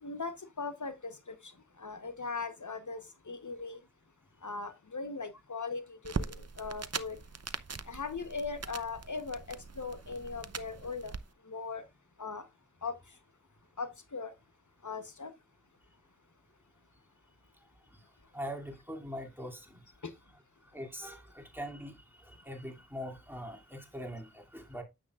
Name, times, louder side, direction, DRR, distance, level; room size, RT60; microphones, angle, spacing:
voice 1, 0.0-1.5 1.8-3.8 4.4-7.2 7.9-11.1 11.4-11.8 12.2-12.5 12.8-13.0 13.8-14.3 14.8-15.3 20.0-20.1, left 4 dB, 75° left, 1.0 m, -39 dB
sound 1, 6.0-11.2, right 4 dB, 55° right, 0.7 m, -41 dB
voice 2, 18.3-19.8 20.7-24.8, equal, 5° right, 2.6 m, -42 dB
9.4 x 8.2 x 2.4 m
wide cardioid pair, 40°, 30 cm